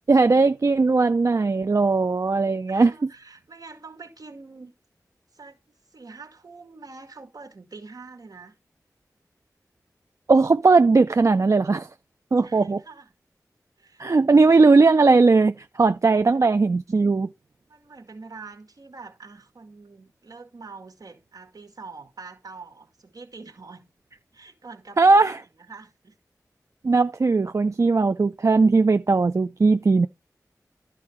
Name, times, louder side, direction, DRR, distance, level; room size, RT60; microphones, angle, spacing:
voice 1, 0.1-3.1 10.3-11.9 12.3-12.8 14.0-17.3 25.0-25.4 26.8-30.1, right 3 dB, 50° right, 0.4 m, -18 dB
voice 2, 2.7-4.7 5.3-8.5 12.4-13.1 13.8-14.1 16.2-16.4 17.7-23.9 24.3-26.2, right 4 dB, 70° right, 2.1 m, -45 dB
11.5 x 4.6 x 4.4 m
cardioid pair, 45°, 7 cm